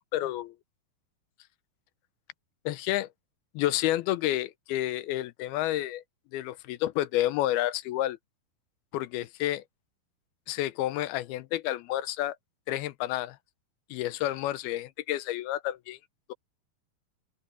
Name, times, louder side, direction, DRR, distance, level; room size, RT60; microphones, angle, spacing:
voice 1, 0.1-0.5 2.7-3.1 3.5-6.0 6.3-8.2 8.9-9.6 10.5-12.4 12.7-13.4 13.9-16.0, left 14 dB, 85° left, 2.7 m, -30 dB
open air
omnidirectional pair, 4.3 m